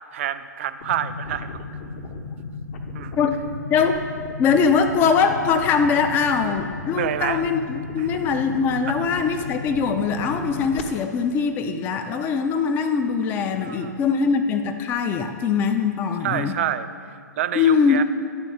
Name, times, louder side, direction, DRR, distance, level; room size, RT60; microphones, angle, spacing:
voice 1, 0.1-1.6 2.9-3.2 6.9-7.4 8.0-8.2 13.6-14.1 16.2-16.9 17.4-18.0, right 10 dB, 45° right, 12 dB, 0.4 m, -27 dB
sound 1, 0.8-10.8, left 4 dB, 45° left, 0.8 m, -35 dB
voice 2, 4.4-16.6 17.5-18.0, left 5 dB, 20° left, 7 dB, 0.4 m, -22 dB
11.0 x 4.1 x 4.9 m, 2.3 s
figure-of-eight pair, 115°, 10 cm